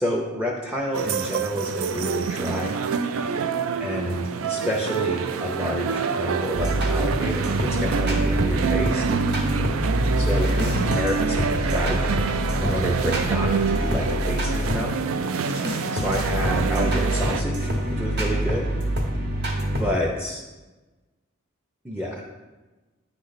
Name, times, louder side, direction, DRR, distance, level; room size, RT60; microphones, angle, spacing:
voice 1, 0.0-2.8 3.8-9.0 10.2-12.0 12.6-14.9 15.9-18.7 19.6-20.4 21.8-22.3, equal, 5° right, -1 dB, 0.5 m, -29 dB
sound 1, 0.9-17.4, right 5 dB, 80° right, 0.4 m, -27 dB
sound 2, 6.5-14.8 15.3-19.9, equal, 55° right, 1.0 m, -26 dB
9.4 x 3.2 x 4.0 m, 1.2 s
head